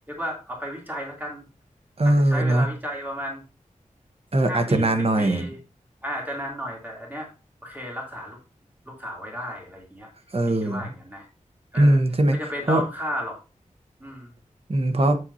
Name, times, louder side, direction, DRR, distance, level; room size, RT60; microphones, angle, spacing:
voice 1, 0.1-1.4 2.0-3.4 4.4-4.9 5.2-5.6 6.0-7.3 7.6-8.4 8.9-10.1 10.5-11.3 11.7-12.0 12.3-13.4 14.0-14.3, equal, 15° right, -2 dB, 3.1 m, -33 dB
voice 2, 2.0-2.7 4.3-5.4 10.3-10.8 11.8-12.4 12.7-12.8 14.7-15.2, right 1 dB, 45° right, 7 dB, 1.1 m, -20 dB
8.3 x 7.8 x 2.8 m, 0.30 s
wide cardioid pair, 80°, 14 cm